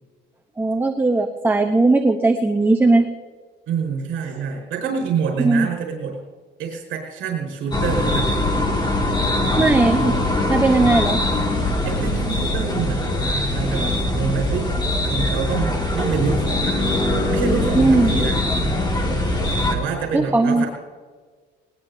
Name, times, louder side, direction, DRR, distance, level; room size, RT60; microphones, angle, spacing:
voice 1, 0.6-3.1 5.4-5.7 9.6-10.1 10.5-11.2 17.8-18.1 20.1-20.6, right 2 dB, 10° right, 5 dB, 0.9 m, -17 dB
voice 2, 3.7-6.2 6.6-8.5 11.8-14.8 15.0-16.8 17.3-18.4 19.7-20.7, right 6 dB, 70° right, -1 dB, 5.2 m, -26 dB
sound 1, 7.7-19.8, left 1 dB, 20° left, 2.2 m, -22 dB
20.5 x 20.0 x 2.8 m, 1.5 s
cardioid pair, 130°, 21 cm